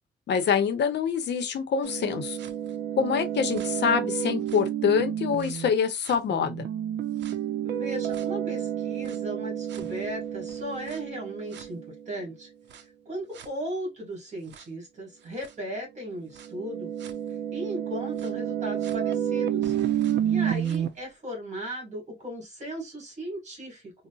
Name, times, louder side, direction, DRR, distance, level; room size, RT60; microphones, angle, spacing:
voice 1, 0.3-2.4 3.0-6.7, left 7 dB, 70° left, 0.7 m, -25 dB
sound 1, 1.8-5.7 6.0-12.2 12.7-12.8 13.4-13.5 14.5-14.6 15.4-15.5 16.4-20.9, right 10 dB, 70° right, 0.5 m, -30 dB
voice 2, 7.6-12.5 12.8-16.9 17.5-23.9, equal, 40° right, 1.7 m, -37 dB
3.9 x 2.1 x 2.3 m
wide cardioid pair, 150°, 19 cm